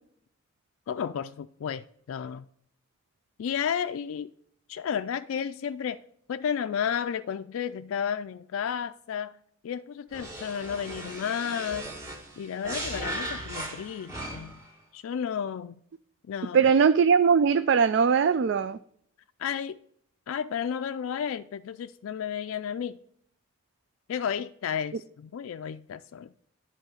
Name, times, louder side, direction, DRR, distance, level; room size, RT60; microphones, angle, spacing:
voice 1, 0.9-2.4 3.4-4.3 4.7-6.0 6.3-9.4 9.6-11.9 12.4-14.6 14.9-15.8 16.3-16.6 19.4-19.8 20.3-23.0 24.1-26.3, left 8 dB, 85° left, 0.3 m, -32 dB
sound 1, 10.1-14.7, right 1 dB, 15° right, 2.0 m, -37 dB
voice 2, 16.5-18.8, right 6 dB, 60° right, 0.3 m, -20 dB
10.5 x 3.8 x 6.4 m
head